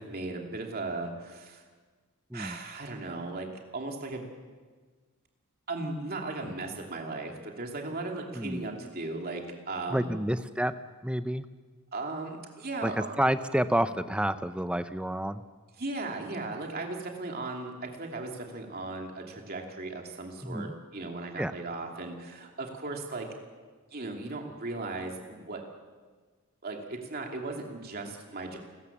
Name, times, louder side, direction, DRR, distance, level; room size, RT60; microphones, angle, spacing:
voice 1, 0.0-1.6 2.3-3.5 3.7-4.2 5.7-10.1 11.9-13.2 15.8-23.3 23.9-25.6 26.6-28.6, right 2 dB, 45° right, 1 dB, 2.8 m, -37 dB
voice 2, 8.3-8.7 9.9-10.7 11.0-11.5 12.8-15.4 20.4-20.7 21.4-21.5, right 1 dB, 5° right, 11 dB, 0.7 m, -29 dB
29.0 x 14.0 x 7.3 m, 1.4 s
head